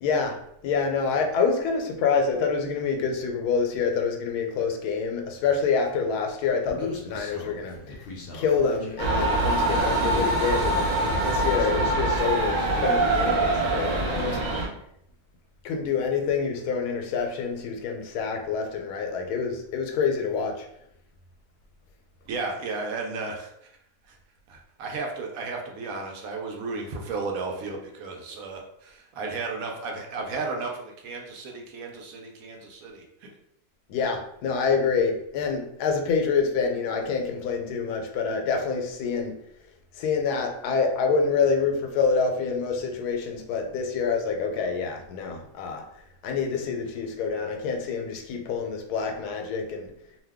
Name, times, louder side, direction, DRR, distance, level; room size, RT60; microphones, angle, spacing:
voice 1, 0.0-14.4 15.6-20.7 33.9-39.3 39.9-45.8 46.2-49.9, left 5 dB, 85° left, 3 dB, 1.1 m, -27 dB
Human voice, 6.7-12.7, left 3 dB, 55° left, 0.6 m, -38 dB
sound 1, 9.0-14.7, right 2 dB, 40° right, 0.8 m, -24 dB
voice 2, 22.3-23.5 24.1-24.2 24.5-33.3, right 3 dB, 70° right, 1 dB, 1.0 m, -34 dB
2.7 x 2.2 x 3.4 m, 0.74 s
omnidirectional pair, 1.6 m